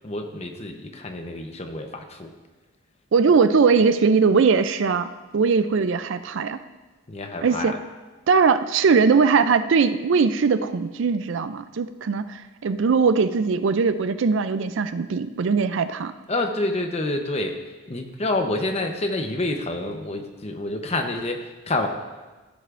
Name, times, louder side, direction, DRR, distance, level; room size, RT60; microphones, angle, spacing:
voice 1, 0.0-2.3 7.1-7.8 16.3-17.6 17.9-21.9, left 2 dB, 30° left, 4 dB, 0.8 m, -28 dB
voice 2, 3.1-6.6 7.4-7.7 8.3-16.1, right 5 dB, 60° right, 12 dB, 0.4 m, -20 dB
15.5 x 10.0 x 2.5 m, 1.2 s
head